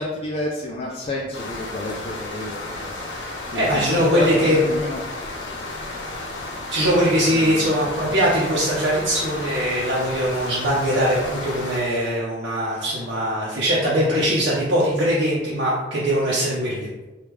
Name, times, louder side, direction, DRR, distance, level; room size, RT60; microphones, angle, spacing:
voice 1, 0.0-3.9 4.1-5.3 7.3-7.7 11.8-12.1 12.7-12.8, left 1 dB, 35° left, -2 dB, 0.3 m, -31 dB
sound 1, 1.3-11.8, left 2 dB, 80° left, 0.6 m, -33 dB
voice 2, 3.5-4.6 6.7-16.9, equal, 85° right, -7 dB, 0.6 m, -21 dB
3.4 x 2.3 x 3.0 m, 1.1 s
head